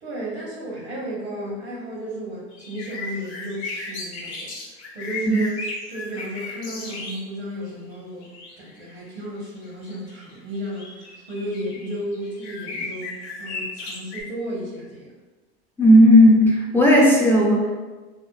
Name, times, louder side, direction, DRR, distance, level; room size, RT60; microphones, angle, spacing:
voice 1, 0.0-4.5 4.9-5.6 5.9-8.3 8.6-15.1, right 1 dB, 80° right, -3 dB, 1.1 m, -33 dB
sound 1, 2.5-7.2 7.6-14.2, left 3 dB, 85° left, 0.7 m, -35 dB
voice 2, 15.8-17.7, equal, 5° left, -4 dB, 0.5 m, -14 dB
3.5 x 2.1 x 2.3 m, 1.2 s
hypercardioid pair, 85°, 33 cm